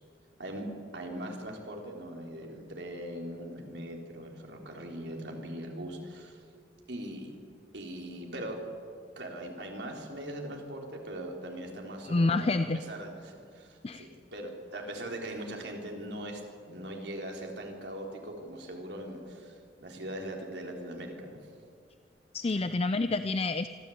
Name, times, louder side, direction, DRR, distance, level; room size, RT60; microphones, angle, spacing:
voice 1, 0.9-6.4 6.9-7.3 7.7-8.6 9.2-21.4, right 1 dB, 75° right, 1 dB, 3.7 m, -40 dB
voice 2, 12.0-12.8 13.8-14.1 22.3-23.7, left 3 dB, 35° left, 11 dB, 0.5 m, -28 dB
25.0 x 14.5 x 8.6 m, 2.3 s
head